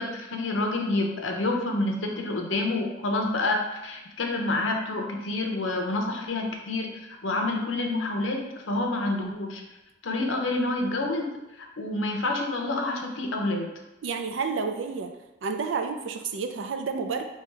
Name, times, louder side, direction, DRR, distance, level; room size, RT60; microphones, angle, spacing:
voice 1, 0.0-9.6 10.0-11.3 11.6-13.7, left 2 dB, 90° left, 2 dB, 0.7 m, -28 dB
voice 2, 14.0-15.1 15.4-17.2, right 5 dB, 75° right, 6 dB, 0.4 m, -30 dB
3.3 x 3.1 x 4.5 m, 0.98 s
head